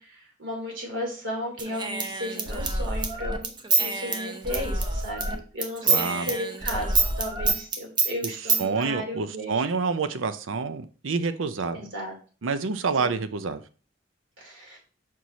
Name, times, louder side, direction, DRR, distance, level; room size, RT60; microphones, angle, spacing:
voice 1, 0.0-9.6 11.7-12.1 13.0-13.2 14.4-14.8, equal, 70° right, 0 dB, 2.9 m, -35 dB
Human voice / Scissors, 1.6-5.3 5.6-8.6, right 3 dB, 25° right, 0.7 m, -26 dB
voice 2, 5.9-6.3 8.6-11.8 12.4-13.6, right 4 dB, 90° right, 12 dB, 0.6 m, -28 dB
6.1 x 4.6 x 4.1 m, 0.38 s
head